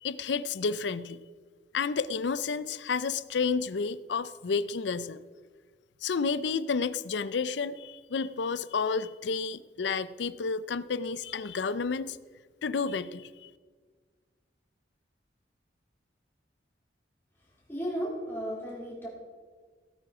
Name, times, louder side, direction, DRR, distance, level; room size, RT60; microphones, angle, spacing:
voice 1, 0.0-1.2 1.7-5.2 6.0-12.2 12.6-13.5, left 5 dB, 75° left, 16 dB, 0.5 m, -31 dB
voice 2, 17.7-19.1, equal, 10° left, -5 dB, 3.9 m, -34 dB
16.5 x 9.1 x 4.9 m, 1.5 s
head